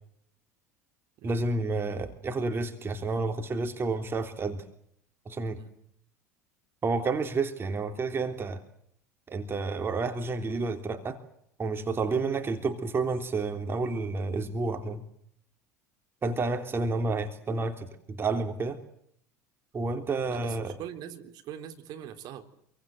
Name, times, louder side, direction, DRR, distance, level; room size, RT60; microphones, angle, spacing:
voice 1, 1.2-4.6 5.3-5.6 6.8-8.6 9.3-11.2 11.6-15.0 16.2-18.8 19.7-20.8, right 3 dB, 25° right, 6 dB, 3.4 m, -30 dB
voice 2, 20.3-22.4, right 10 dB, 50° right, 7 dB, 3.8 m, -42 dB
28.0 x 24.0 x 7.8 m, 0.69 s
hypercardioid pair, 75°, 9 cm